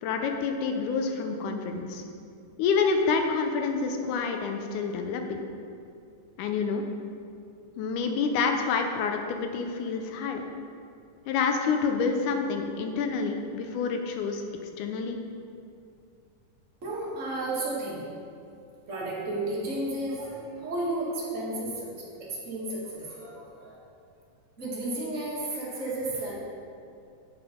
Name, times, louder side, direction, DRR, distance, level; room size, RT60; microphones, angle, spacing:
voice 1, 0.0-2.0 2.6-5.4 6.4-6.8 7.8-10.4 11.3-14.4 14.8-15.2, left 5 dB, 75° left, 4 dB, 2.1 m, -28 dB
voice 2, 16.8-18.1 18.9-21.9 22.2-23.8 24.6-26.3, right 2 dB, 30° right, -6 dB, 1.6 m, -33 dB
9.2 x 5.4 x 5.2 m, 2.5 s
omnidirectional pair, 3.8 m